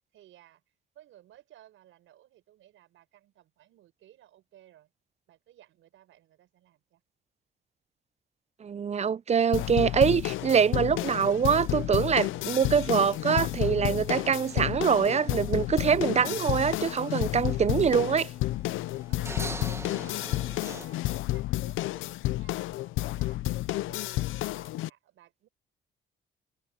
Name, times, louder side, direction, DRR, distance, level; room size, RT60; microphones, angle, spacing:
voice 1, 0.1-0.6 0.9-4.9 5.3-7.0 19.1-23.4 23.7-25.5, right 13 dB, 80° right, 6.7 m, -58 dB
voice 2, 8.6-18.3, right 7 dB, 35° right, 0.6 m, -24 dB
sound 1, 9.5-24.9, left 16 dB, 85° left, 0.6 m, -31 dB
sound 2, 9.9-20.9, right 2 dB, 15° right, 1.9 m, -46 dB
cardioid pair, 90°, 20 cm